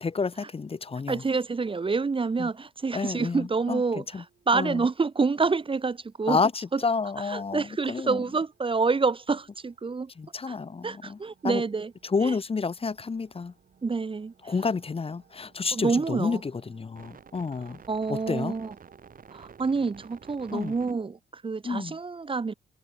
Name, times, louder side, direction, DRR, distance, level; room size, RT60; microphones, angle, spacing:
voice 1, 0.0-1.2 2.4-2.5 2.9-4.2 4.5-4.8 6.3-8.2 10.2-11.2 11.4-11.6 12.0-13.5 14.4-17.8 18.1-18.6 20.5-20.7 21.6-22.0, left 4 dB, 30° left, 1.5 m, -30 dB
voice 2, 1.1-6.4 6.7-6.8 7.3-10.1 10.5-10.6 10.8-11.9 12.2-12.3 13.8-14.5 15.7-16.4 17.9-18.7 19.3-22.5, right 4 dB, 25° right, 1.3 m, -27 dB
sound 1, 4.1-4.7 5.3-5.6 6.4-21.1, right 6 dB, 45° right, 4.8 m, -55 dB
cardioid pair, 90°, 20 cm